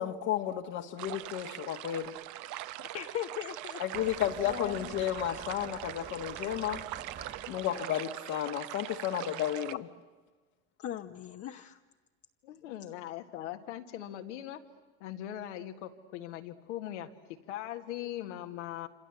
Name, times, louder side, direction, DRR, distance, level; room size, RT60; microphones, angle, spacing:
voice 1, 0.0-2.2 3.8-6.8 7.5-9.9, left 11 dB, 60° left, 2 dB, 1.5 m, -33 dB
sound 1, 1.0-9.7, right 15 dB, 55° right, 0.9 m, -42 dB
voice 2, 2.8-4.8 10.8-11.8, left 10 dB, 45° left, 5 dB, 1.0 m, -40 dB
sound 2, 3.9-7.8, right 6 dB, 35° right, 2.2 m, -47 dB
voice 3, 12.4-14.6 15.0-18.9, left 12 dB, 90° left, 6 dB, 1.9 m, -40 dB
27.0 x 26.5 x 8.0 m, 1.3 s
supercardioid pair, 100°, 35 cm